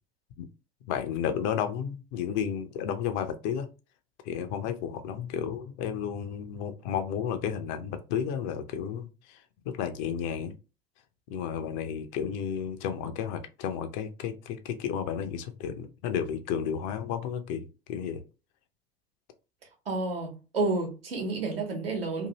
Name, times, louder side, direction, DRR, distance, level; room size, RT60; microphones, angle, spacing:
voice 1, 0.9-3.7 4.3-9.4 9.7-10.6 11.3-18.2, left 8 dB, 50° left, 0.6 m, -32 dB
voice 2, 19.9-22.3, right 3 dB, 75° right, 1.1 m, -30 dB
2.8 x 2.6 x 2.8 m
figure-of-eight pair, 70°, 29 cm